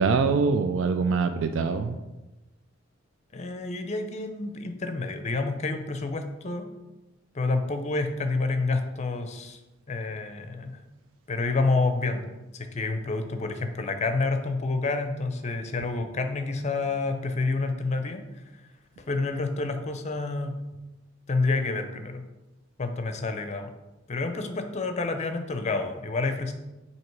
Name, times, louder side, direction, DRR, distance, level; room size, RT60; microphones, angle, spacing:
voice 1, 0.0-2.0, right 4 dB, 75° right, 8 dB, 0.4 m, -24 dB
voice 2, 3.3-6.7 7.3-9.6 9.9-10.8 11.3-12.2 12.5-18.2 19.0-20.6 21.3-22.2 22.8-23.7 24.1-26.5, left 3 dB, 35° left, 7 dB, 0.6 m, -28 dB
7.7 x 2.9 x 4.6 m, 1.1 s
head